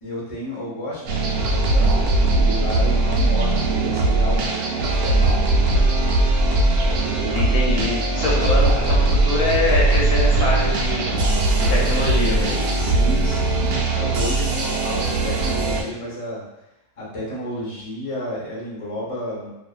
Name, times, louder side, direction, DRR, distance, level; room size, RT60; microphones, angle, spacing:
voice 1, 0.0-2.1 2.3-5.6 12.7-16.4 17.0-19.5, equal, 30° left, -7 dB, 0.7 m, -31 dB
sound 1, 1.1-15.8, right 2 dB, 80° right, 1.1 m, -19 dB
voice 2, 7.3-11.1 11.7-12.6, left 2 dB, 80° left, -4 dB, 1.1 m, -24 dB
2.6 x 2.4 x 2.3 m, 0.94 s
omnidirectional pair, 1.6 m